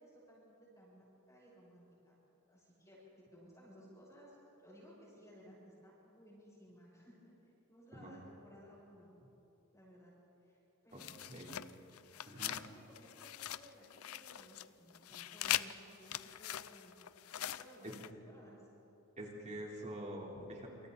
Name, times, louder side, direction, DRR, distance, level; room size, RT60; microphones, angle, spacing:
voice 1, 0.0-2.2 2.5-4.4 4.6-7.3 7.7-9.1 9.7-10.1 10.4-11.2 12.4-17.0 17.3-17.9 18.3-18.7, equal, 15° left, -8 dB, 7.2 m, -59 dB
sound 1, 11.0-12.7 12.9-14.7 14.9-18.1, left 12 dB, 85° left, 0.6 m, -41 dB
voice 2, 19.2-20.7, right 1 dB, 35° right, -2 dB, 4.0 m, -45 dB
28.0 x 27.5 x 4.2 m, 2.9 s
head